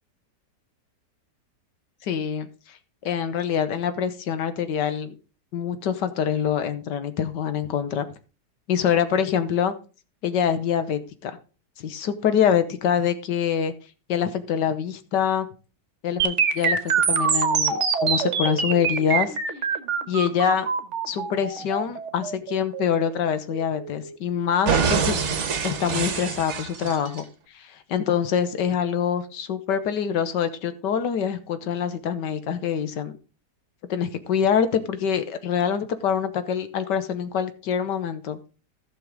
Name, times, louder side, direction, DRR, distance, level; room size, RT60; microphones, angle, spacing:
voice 1, 2.0-2.8 3.0-5.1 5.5-8.0 8.7-9.7 10.2-11.4 11.8-13.7 14.1-15.5 16.0-19.4 20.1-20.7 21.1-25.3 25.6-27.2 27.5-33.1 33.9-38.4, left 8 dB, 85° left, 11 dB, 1.6 m, -25 dB
sound 1, 16.2-24.2 24.7-27.2, right 6 dB, 50° right, 1.2 m, -25 dB
14.5 x 6.2 x 3.7 m, 0.33 s
omnidirectional pair, 1.9 m